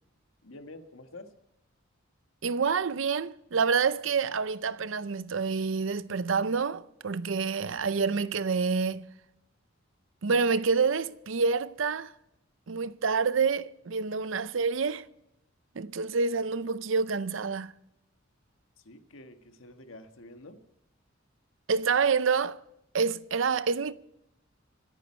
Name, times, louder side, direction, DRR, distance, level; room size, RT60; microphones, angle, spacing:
voice 1, 0.4-1.3 18.8-20.6, left 2 dB, 85° left, 1.5 m, -48 dB
voice 2, 2.4-9.1 10.2-12.1 12.7-15.0 15.8-17.7 21.7-22.6 22.9-23.9, right 5 dB, 75° right, 0.6 m, -27 dB
24.5 x 9.2 x 4.3 m
head